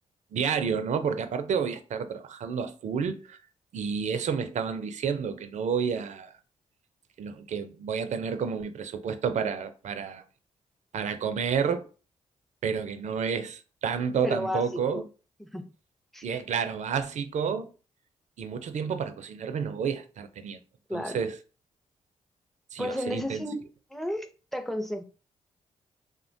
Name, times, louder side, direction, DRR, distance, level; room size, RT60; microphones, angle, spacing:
voice 1, 0.3-3.4 3.7-6.3 7.2-10.2 10.9-11.9 12.6-15.0 16.2-17.7 18.4-20.6 20.9-21.4 22.7-23.4, right 6 dB, 65° right, 0.4 m, -30 dB
voice 2, 14.2-14.6 14.9-15.0 15.4-15.7 16.1-16.2 20.9-21.2 22.8-23.6 23.9-25.0, equal, ahead, 0.5 m, -32 dB
3.2 x 2.1 x 2.5 m
supercardioid pair, 50°, 13 cm